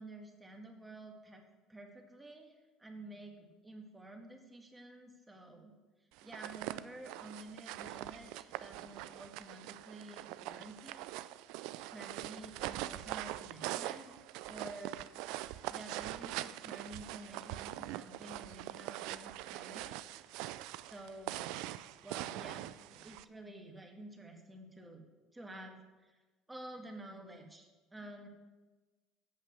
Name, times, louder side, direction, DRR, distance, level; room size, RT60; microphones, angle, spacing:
voice 1, 0.0-1.4 1.7-5.7 6.2-11.0 11.9-14.2 14.5-15.0 15.7-20.0 20.9-21.6 22.0-25.1 25.3-26.2 26.5-28.3, right 2 dB, 15° right, 3 dB, 1.8 m, -50 dB
sound 1, 6.2-23.2, right 15 dB, 70° right, 0.3 m, -43 dB
7.7 x 5.6 x 7.7 m, 1.2 s
hypercardioid pair, 75°, 0 cm